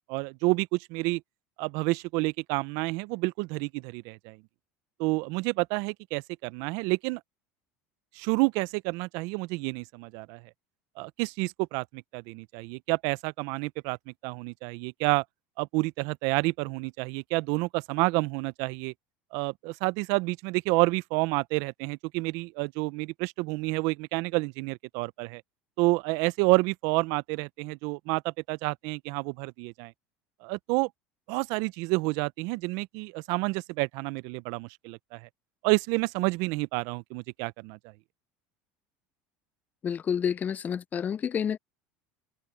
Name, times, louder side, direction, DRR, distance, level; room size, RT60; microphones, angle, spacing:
voice 1, 0.1-1.2 1.6-4.4 5.0-7.2 8.1-10.4 11.0-14.0 14.2-15.2 15.6-18.9 19.3-25.4 25.8-29.9 30.4-30.9 31.3-35.3 35.6-37.8, right 25 dB, 70° right, 0.6 m, -29 dB
voice 2, 39.8-41.6, left 8 dB, 25° left, 0.4 m, -29 dB
supercardioid pair, 115°, 6 cm